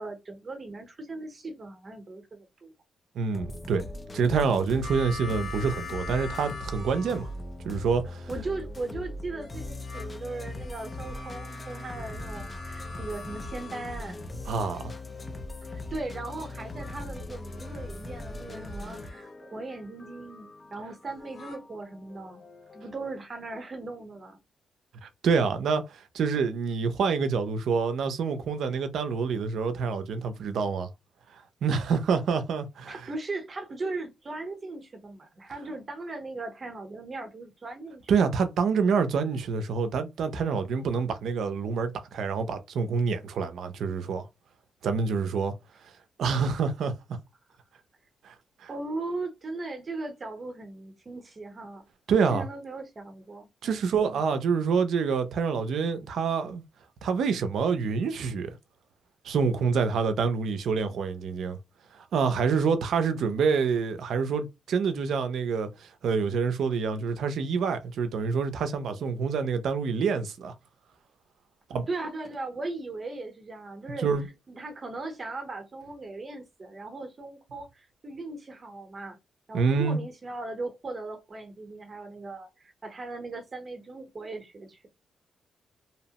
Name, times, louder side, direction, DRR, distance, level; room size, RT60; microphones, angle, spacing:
voice 1, 0.0-2.7 8.3-14.2 15.6-22.4 22.7-24.4 32.9-38.1 48.7-51.8 52.1-54.0 71.9-74.1 74.5-79.2 79.5-84.9, right 2 dB, 30° right, 0.8 m, -38 dB
voice 2, 3.2-3.9 4.1-7.3 7.6-8.3 14.5-14.9 25.0-30.9 31.6-33.1 38.1-44.3 44.8-45.5 46.2-46.9 48.2-48.3 48.6-48.7 52.1-52.5 53.6-56.6 57.0-58.6 59.2-61.6 61.9-70.5 71.7-71.9 74.0-74.3 79.5-80.0, right 5 dB, 75° right, 0.5 m, -27 dB
sound 1, 3.3-23.0, left 2 dB, 20° left, 0.4 m, -40 dB
sound 2, 4.8-7.7 9.4-14.6 16.5-19.3 21.1-21.6, left 4 dB, 50° left, 0.8 m, -44 dB
2.8 x 2.0 x 2.8 m
cardioid pair, 135°, 0 cm